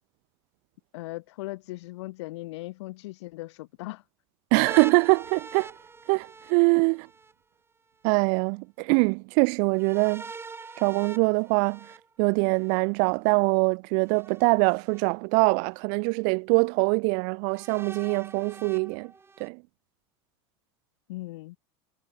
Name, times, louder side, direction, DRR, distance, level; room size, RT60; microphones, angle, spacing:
voice 1, 0.9-4.0 21.1-21.6, left 20 dB, 75° left, 2.8 m, -38 dB
voice 2, 4.5-5.7 6.1-7.1 8.0-10.2 10.8-11.9 12.2-19.1 19.4-19.6, right 40 dB or more, 60° right, 0.8 m, -23 dB
sound 1, 4.6-7.3 9.7-12.8 14.1-15.0 15.8-15.9 17.5-19.5, right 4 dB, 15° right, 3.6 m, -44 dB
supercardioid pair, 115°, 15 cm